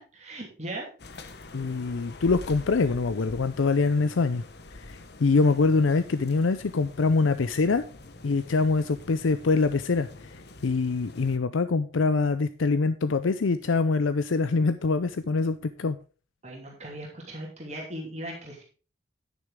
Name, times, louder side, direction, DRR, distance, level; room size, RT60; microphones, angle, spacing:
voice 1, 0.1-0.9 16.4-18.6, right 1 dB, 35° right, -1 dB, 2.8 m, -38 dB
sound 1, 1.0-11.4, left 2 dB, 55° left, 1.0 m, -46 dB
voice 2, 1.5-4.4 4.7-7.8 8.2-16.0, left 4 dB, 85° left, 12 dB, 0.6 m, -24 dB
9.9 x 8.9 x 3.7 m, 0.35 s
head